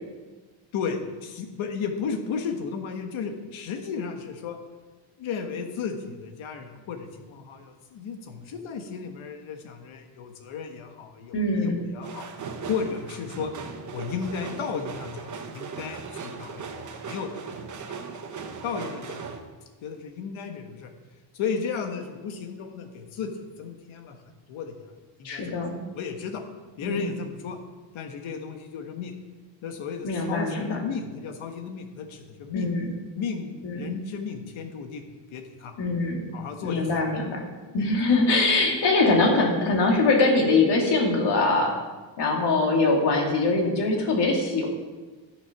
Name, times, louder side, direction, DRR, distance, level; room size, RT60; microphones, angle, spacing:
voice 1, 0.7-4.6 5.2-12.3 12.7-13.6 13.9-17.6 17.9-18.0 18.6-19.2 19.8-20.9 21.3-23.3 23.6-24.2 24.5-24.7 25.2-25.5 25.9-26.4 26.8-27.6 27.9-29.1 29.6-32.7 33.1-35.0 35.3-35.8 36.3-37.2 37.8-37.9, left 6 dB, 85° left, 5 dB, 1.6 m, -34 dB
voice 2, 11.3-11.8 25.2-25.8 26.8-27.1 30.0-30.8 32.5-32.9 33.6-33.9 35.8-36.2 36.6-37.4 37.7-41.8 42.2-44.7, left 3 dB, 60° left, 0 dB, 2.4 m, -23 dB
sound 1, 12.0-19.4, right 5 dB, 40° right, 1.0 m, -38 dB
13.0 x 6.8 x 5.9 m, 1.3 s
cardioid pair, 165°, 46 cm